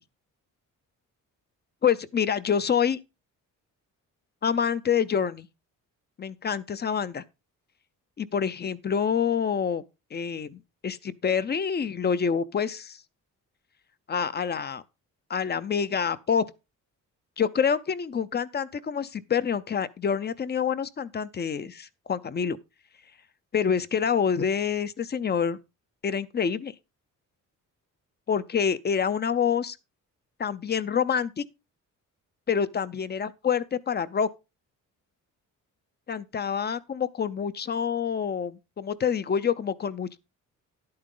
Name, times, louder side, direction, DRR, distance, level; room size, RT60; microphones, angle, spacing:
voice 1, 1.8-3.0 4.4-5.5 6.2-7.2 8.2-9.8 10.1-13.0 14.1-14.8 15.3-16.4 17.4-22.6 23.5-25.6 26.0-26.7 28.3-29.8 30.4-31.4 32.5-34.3 36.1-40.2, left 7 dB, 30° left, 0.5 m, -27 dB
11.0 x 8.7 x 3.8 m
cardioid pair, 140°, 33 cm